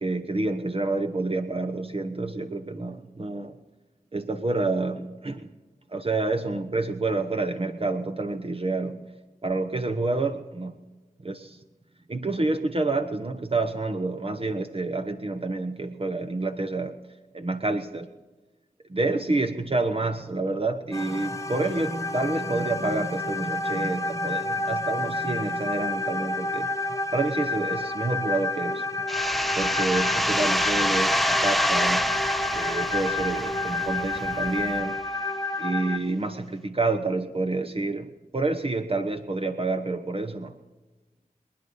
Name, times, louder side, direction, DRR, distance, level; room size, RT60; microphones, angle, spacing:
voice 1, 0.0-3.5 4.1-5.5 5.9-9.1 9.4-10.7 11.2-11.6 12.1-17.0 17.3-18.1 18.9-26.7 27.1-28.9 29.6-32.1 32.5-35.0 35.6-40.5, right 2 dB, 40° right, 7 dB, 1.0 m, -28 dB
sound 1, 20.9-36.0, left 2 dB, 20° left, 1.0 m, -30 dB
sound 2, 29.1-34.6, equal, ahead, 0.5 m, -26 dB
sound 3, 29.1-34.8, right 1 dB, 80° right, 6.5 m, -43 dB
27.0 x 9.7 x 5.5 m, 1.2 s
cardioid pair, 55°, 15 cm